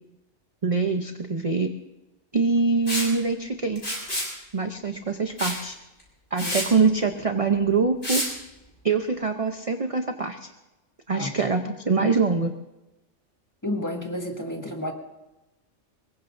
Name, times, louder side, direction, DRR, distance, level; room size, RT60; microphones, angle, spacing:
voice 1, 0.6-1.7 2.3-3.8 4.5-5.8 6.3-8.2 8.8-10.5 11.1-12.5, right 4 dB, 35° right, 6 dB, 0.7 m, -24 dB
Liquid, 2.9-3.1 3.8-4.3 5.4-5.6 6.0-6.1 6.4-6.7 8.0-8.3, left 1 dB, 50° left, 6.0 m, -28 dB
voice 2, 11.1-11.5 13.6-14.9, left 1 dB, 15° left, 2 dB, 1.7 m, -31 dB
24.5 x 21.5 x 2.6 m, 1.0 s
omnidirectional pair, 1.3 m